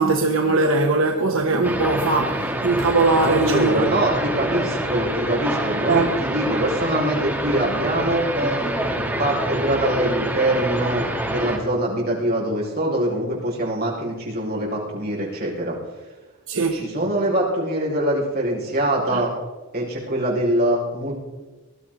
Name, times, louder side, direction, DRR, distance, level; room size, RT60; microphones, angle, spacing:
voice 1, 0.0-3.8 5.9-6.1 16.5-16.8 19.1-19.2, right 3 dB, 70° right, 1.1 m, -20 dB
sound 1, 1.6-11.6, right 1 dB, 10° right, 1.7 m, -26 dB
voice 2, 3.1-15.8 16.7-19.3 19.7-21.1, right 1 dB, 45° right, 5.3 m, -23 dB
20.5 x 12.5 x 4.0 m
head